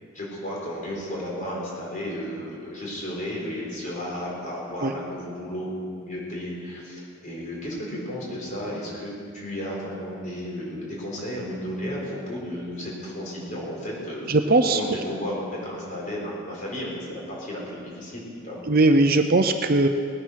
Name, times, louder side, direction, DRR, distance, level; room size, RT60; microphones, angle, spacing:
voice 1, 0.1-5.7 6.0-14.3 14.6-18.9, equal, 35° left, -4 dB, 4.3 m, -33 dB
voice 2, 14.3-14.8 18.7-19.9, right 2 dB, 45° right, 7 dB, 0.6 m, -19 dB
19.0 x 9.9 x 6.4 m, 2.3 s
head